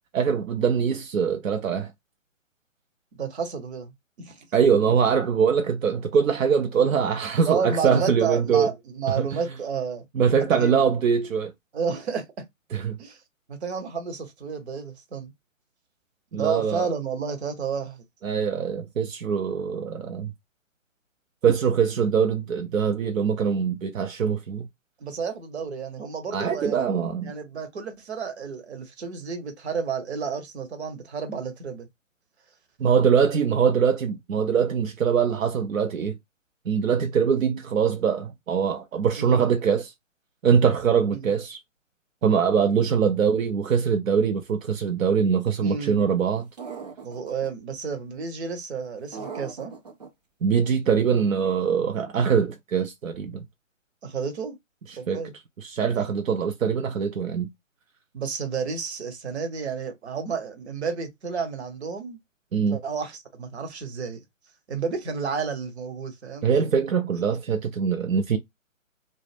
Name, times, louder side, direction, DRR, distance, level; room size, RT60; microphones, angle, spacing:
voice 1, 0.1-1.9 4.5-8.7 9.2-9.4 10.1-11.5 12.7-13.0 16.3-16.9 18.2-20.3 21.4-24.7 26.3-27.3 32.8-36.2 36.7-39.9 40.4-41.6 42.2-46.5 50.4-53.4 54.9-55.2 55.6-57.5 62.5-62.8 66.4-68.4, right 6 dB, 80° right, 0.6 m, -23 dB
voice 2, 3.2-3.9 4.2-4.5 7.5-10.0 10.5-10.8 11.7-12.4 13.0-13.2 13.5-15.3 16.3-18.0 25.0-26.8 27.2-31.9 39.2-39.5 41.1-41.3 45.6-46.0 47.0-49.7 54.0-54.6 55.0-55.3 58.1-62.2 62.6-64.2 64.7-66.6, right 5 dB, 55° right, 0.9 m, -31 dB
sound 1, 46.6-47.5 49.1-50.1, right 5 dB, 35° right, 0.5 m, -38 dB
2.0 x 2.0 x 3.2 m
figure-of-eight pair, 145°, 40 cm